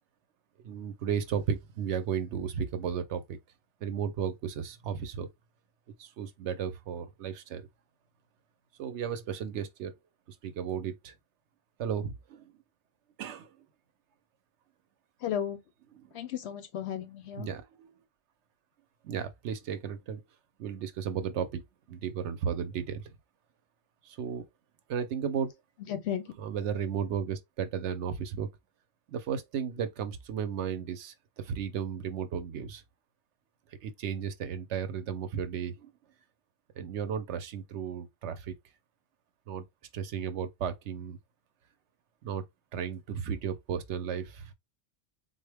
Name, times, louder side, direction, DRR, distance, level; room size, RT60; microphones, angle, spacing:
voice 1, 0.6-3.4 3.8-5.3 6.0-7.7 8.8-9.9 10.3-11.1 11.8-12.5 13.2-13.5 15.9-16.1 17.3-17.9 19.0-20.2 20.6-23.1 24.0-24.5 24.9-25.5 26.4-28.5 29.1-32.8 33.8-35.9 36.8-38.5 39.5-39.6 39.9-41.2 42.2-42.4 42.7-44.5, right 7 dB, 70° right, 0.8 m, -34 dB
voice 2, 15.2-15.6 16.1-17.5 25.9-26.2, left 9 dB, 65° left, 0.8 m, -34 dB
3.9 x 2.1 x 3.3 m
omnidirectional pair, 1.3 m